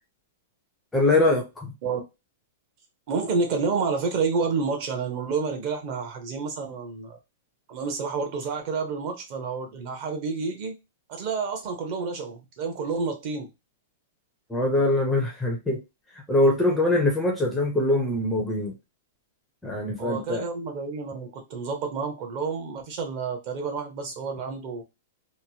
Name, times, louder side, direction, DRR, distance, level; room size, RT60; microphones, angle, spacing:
voice 1, 0.9-1.7 14.5-15.8 16.3-18.7 19.6-20.4, left 2 dB, 5° left, 0.5 m, -23 dB
voice 2, 3.1-7.2 7.7-10.8 11.1-13.5 20.0-24.8, right 4 dB, 35° right, 0.7 m, -29 dB
2.9 x 2.0 x 2.7 m
supercardioid pair, 170°, 0 cm